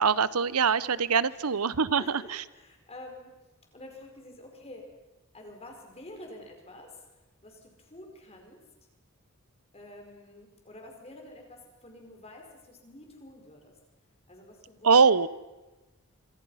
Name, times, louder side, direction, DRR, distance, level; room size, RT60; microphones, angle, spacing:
voice 1, 0.0-2.0 14.8-15.3, right 5 dB, 90° right, 18 dB, 0.9 m, -22 dB
voice 2, 1.9-3.3 3.7-4.8 5.3-8.6 9.7-13.7 14.3-15.2, left 1 dB, 30° left, 2 dB, 5.2 m, -48 dB
26.0 x 25.0 x 5.8 m, 1.1 s
head